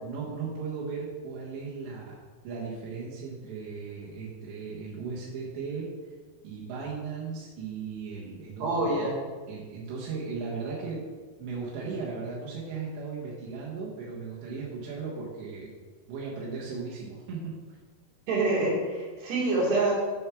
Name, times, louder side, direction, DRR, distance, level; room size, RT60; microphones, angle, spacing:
voice 1, 0.0-2.2 2.4-5.9 6.4-9.1 9.5-11.0 11.4-15.7 16.1-17.6, right 5 dB, 90° right, -5 dB, 3.7 m, -36 dB
voice 2, 8.6-9.2 18.3-19.9, right 2 dB, 70° right, -5 dB, 4.2 m, -26 dB
7.6 x 6.8 x 4.7 m, 1.4 s
omnidirectional pair, 4.9 m